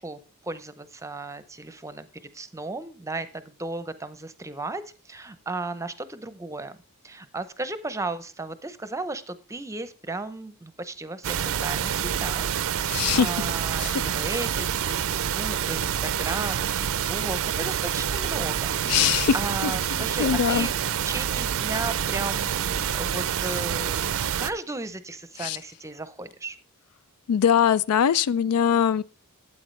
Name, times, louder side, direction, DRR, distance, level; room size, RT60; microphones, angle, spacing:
voice 1, 0.0-2.1 2.3-6.8 7.0-16.8 17.1-20.7 21.1-26.6, right 2 dB, 15° right, 0.7 m, -35 dB
sound 1, 11.2-24.5, right 8 dB, 65° right, 0.5 m, -27 dB
voice 2, 12.9-13.3 13.8-13.9 18.9-19.3 19.6-19.7 20.2-20.7 25.4-25.6 27.3-29.0, left 8 dB, 80° left, 0.4 m, -21 dB
12.5 x 8.6 x 3.2 m
head